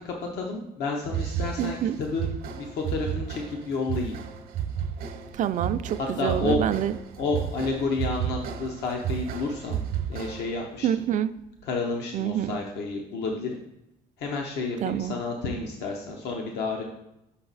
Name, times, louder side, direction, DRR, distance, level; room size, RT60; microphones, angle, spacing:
voice 1, 0.0-4.2 6.0-6.6 7.2-9.8 10.1-10.9 11.6-13.5 14.2-16.8, left 3 dB, 80° left, 0 dB, 0.9 m, -30 dB
sound 1, 1.1-10.6, right 8 dB, 65° right, 0.8 m, -33 dB
voice 2, 1.6-2.0 5.4-6.9 10.8-11.3 12.1-12.6 14.8-15.1, right 10 dB, 50° right, 12 dB, 0.4 m, -26 dB
6.0 x 5.8 x 4.0 m, 0.86 s
cardioid pair, 110°, 17 cm